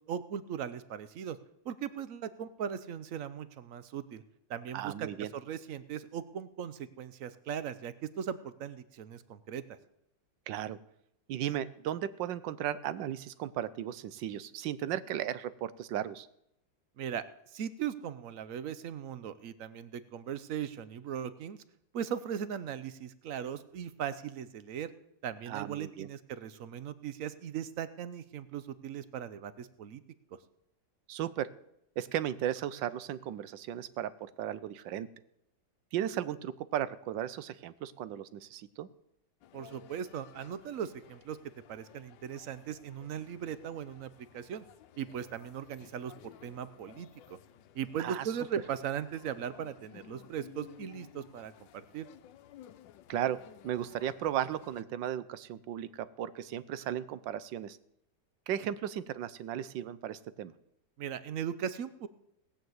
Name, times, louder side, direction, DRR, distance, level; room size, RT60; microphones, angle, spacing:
voice 1, 0.1-1.4 1.6-4.2 4.5-9.6 17.0-17.2 17.5-21.6 21.9-24.9 25.2-30.0 39.5-41.4 41.7-44.6 45.0-47.4 47.7-52.1 61.0-62.1, right 8 dB, 60° right, 14 dB, 0.9 m, -38 dB
voice 2, 4.7-5.3 10.5-10.8 11.3-16.3 25.5-26.1 31.1-31.5 32.0-35.1 35.9-38.9 48.0-48.3 53.1-53.4 53.6-57.8 58.5-60.5, right 11 dB, 85° right, 16 dB, 1.4 m, -35 dB
sound 1, 39.4-54.8, left 11 dB, 90° left, 1.4 m, -56 dB
18.5 x 6.7 x 7.9 m, 0.78 s
omnidirectional pair, 2.0 m